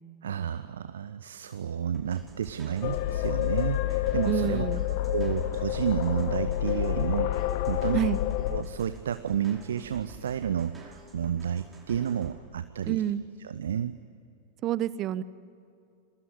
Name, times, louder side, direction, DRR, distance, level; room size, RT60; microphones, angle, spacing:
voice 1, 0.2-4.7 5.1-8.0 8.5-13.0 13.4-14.0, right 9 dB, 65° right, 12 dB, 0.8 m, -31 dB
sound 1, 1.9-12.3, right 2 dB, 15° right, 5.7 m, -48 dB
sound 2, 2.8-8.6, left 13 dB, 50° left, 1.3 m, -28 dB
voice 2, 4.3-4.8 7.9-8.2 12.9-13.2 14.6-15.2, right 11 dB, 35° right, 18 dB, 0.9 m, -28 dB
27.0 x 21.0 x 9.8 m, 2.5 s
figure-of-eight pair, 90°, 0 cm